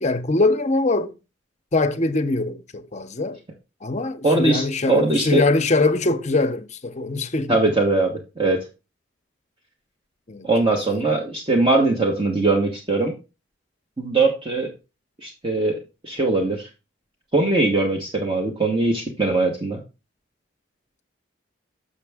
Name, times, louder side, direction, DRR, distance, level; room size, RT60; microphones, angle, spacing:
voice 1, 0.0-1.1 1.7-3.4 3.8-7.7 10.3-10.5 10.9-11.0, left 2 dB, 35° left, 0.6 m, -22 dB
voice 2, 4.2-5.4 7.5-8.6 10.4-13.1 14.0-14.7 15.2-16.7 17.3-19.8, right 2 dB, 25° right, 1.2 m, -21 dB
6.8 x 6.8 x 3.5 m
head